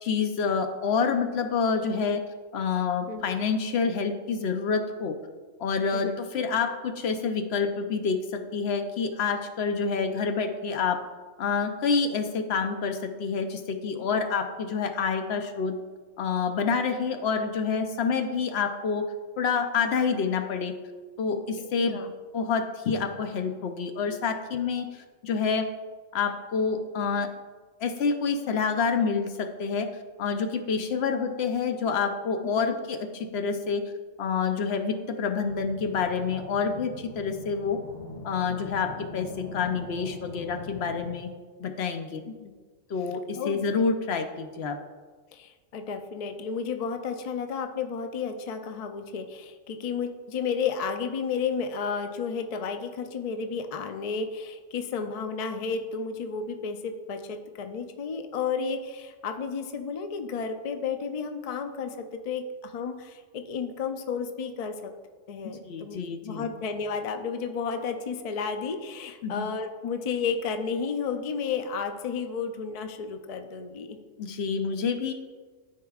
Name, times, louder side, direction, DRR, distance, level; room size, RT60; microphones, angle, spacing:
voice 1, 0.0-2.2 2.5-5.1 5.6-11.0 11.4-15.7 16.2-19.0 19.4-20.7 21.2-22.0 22.3-25.7 26.1-27.3 27.8-29.9 30.2-33.8 34.2-37.8 38.2-41.3 41.6-42.2 42.9-44.8 65.6-66.5 69.2-69.5 74.2-75.1, left 5 dB, 60° left, 6 dB, 0.8 m, -28 dB
sound 1, 35.4-41.1, left 3 dB, 45° left, 2.3 m, -41 dB
voice 2, 45.3-64.9 65.3-74.0, left 5 dB, 80° left, 6 dB, 0.3 m, -32 dB
12.5 x 4.7 x 2.4 m, 1.4 s
omnidirectional pair, 1.4 m